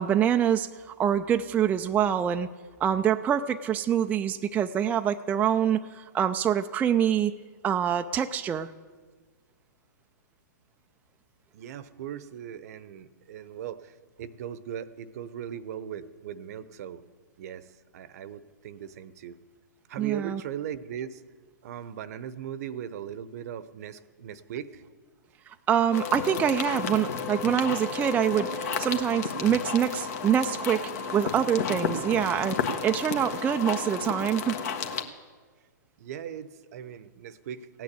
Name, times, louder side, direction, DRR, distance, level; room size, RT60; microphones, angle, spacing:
voice 1, 0.0-2.5 2.8-7.3 7.6-8.7 20.0-20.4 25.5-32.6 32.8-34.6, right 9 dB, 15° right, 6 dB, 0.4 m, -25 dB
voice 2, 11.5-17.0 17.4-19.4 19.9-21.2 21.6-24.8 36.0-37.8, right 9 dB, 55° right, 15 dB, 0.8 m, -39 dB
sound 1, 25.9-35.0, left 5 dB, 55° left, 1.5 m, -32 dB
16.5 x 9.2 x 8.2 m, 1.4 s
hypercardioid pair, 120°, 10 cm